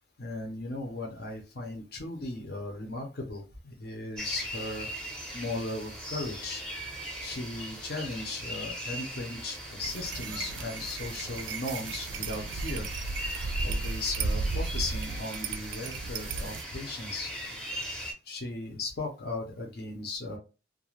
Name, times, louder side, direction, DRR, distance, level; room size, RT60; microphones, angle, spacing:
voice 1, 0.2-4.9 5.3-6.6 7.2-12.9 13.6-17.3 18.3-20.4, left 2 dB, 55° left, 2 dB, 0.6 m, -37 dB
sound 1, 4.2-18.1, equal, 5° left, 0.6 m, -40 dB
sound 2, 9.8-16.6, right 3 dB, 75° right, 0.3 m, -34 dB
2.4 x 2.1 x 3.1 m, 0.30 s
head